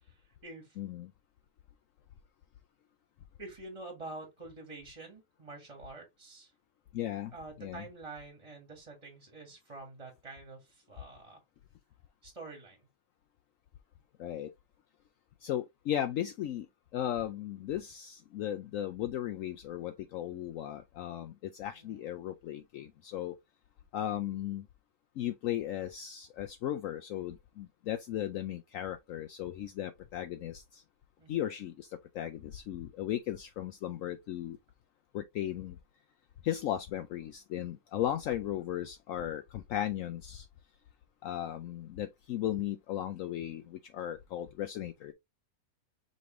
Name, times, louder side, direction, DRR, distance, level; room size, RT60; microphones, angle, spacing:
voice 1, 0.0-0.8 3.4-6.5 7.3-11.4 12.2-12.8 21.7-22.0 31.2-31.6, right 3 dB, 25° right, 1.7 m, -47 dB
voice 2, 0.8-1.1 6.9-7.3 7.6-7.8 14.2-14.5 15.4-16.7 16.9-23.4 23.9-24.7 25.2-30.8 31.3-34.6 35.1-35.8 36.4-40.5 41.2-45.1, left 11 dB, 70° left, 0.9 m, -36 dB
5.2 x 3.2 x 3.0 m
omnidirectional pair, 1.5 m